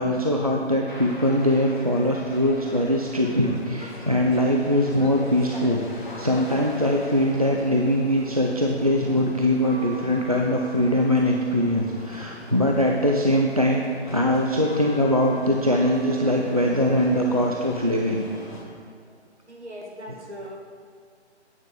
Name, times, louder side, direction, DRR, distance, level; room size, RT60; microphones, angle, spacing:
voice 1, 0.0-13.8 14.1-18.2, left 1 dB, 35° right, 0 dB, 0.4 m, -22 dB
sound 1, 0.9-18.6, left 1 dB, 45° left, 1.2 m, -40 dB
voice 2, 19.5-20.6, equal, 75° right, 0 dB, 1.6 m, -39 dB
9.1 x 6.4 x 3.8 m, 2.1 s
figure-of-eight pair, 150°, 35 cm